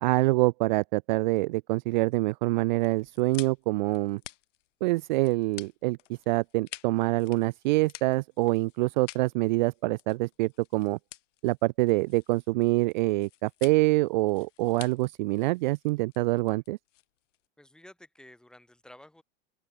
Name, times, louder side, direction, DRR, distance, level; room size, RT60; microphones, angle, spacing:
voice 1, 0.0-4.2 4.8-6.0 6.3-11.0 11.4-16.8, right 21 dB, 40° right, 0.4 m, -25 dB
sound 1, 2.8-17.5, left 14 dB, 90° left, 1.3 m, -49 dB
voice 2, 17.6-19.2, left 1 dB, ahead, 4.8 m, -52 dB
open air
supercardioid pair, 165°, 36 cm